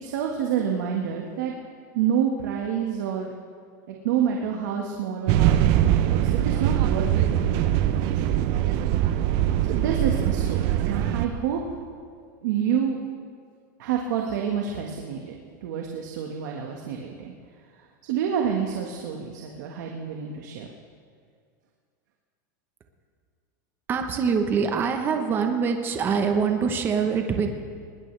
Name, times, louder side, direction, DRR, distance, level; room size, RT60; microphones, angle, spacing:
voice 1, 0.0-1.5 1.9-3.3 3.9-8.5 9.7-11.6 12.4-13.0 13.8-17.3 18.1-20.7, right 8 dB, 65° right, 0 dB, 1.6 m, -28 dB
sound 1, 5.3-11.3, right 11 dB, 40° right, 0.7 m, -22 dB
voice 2, 23.9-27.5, right 6 dB, 20° right, 5 dB, 1.0 m, -24 dB
20.5 x 19.5 x 3.4 m, 2.1 s
supercardioid pair, 165°, 10 cm